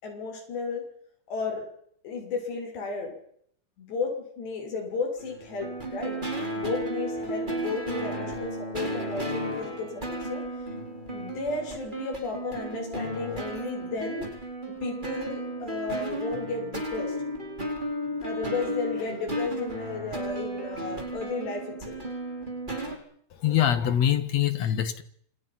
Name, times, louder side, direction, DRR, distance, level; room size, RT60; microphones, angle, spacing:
voice 1, 0.0-0.9 1.3-1.7 2.0-3.1 3.8-6.2 6.6-10.5 11.1-14.3 14.8-17.2 18.2-22.0, left 4 dB, 70° left, 8.8 m, -33 dB
sound 1, 5.2-23.0, right 1 dB, 10° right, 4.1 m, -34 dB
voice 2, 23.4-25.0, left 10 dB, 55° left, 2.1 m, -24 dB
28.0 x 27.5 x 5.9 m
omnidirectional pair, 5.0 m